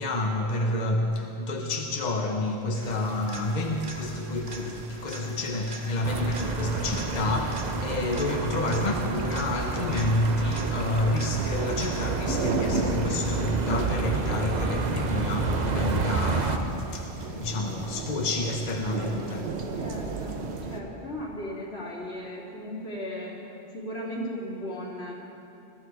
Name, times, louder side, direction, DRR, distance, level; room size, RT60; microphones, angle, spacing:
voice 1, 0.0-19.8, left 2 dB, 45° left, 1.1 m, -29 dB
sound 1, 2.7-12.3 20.3-20.4, right 1 dB, 60° right, 1.5 m, -44 dB
sound 2, 2.8-20.8, right 4 dB, 75° right, 1.3 m, -36 dB
sound 3, 6.0-16.6, right 4 dB, 45° right, 0.9 m, -30 dB
voice 2, 19.7-23.4 23.7-25.1, equal, 80° left, 3.3 m, -36 dB
21.5 x 13.5 x 4.8 m
omnidirectional pair, 1.1 m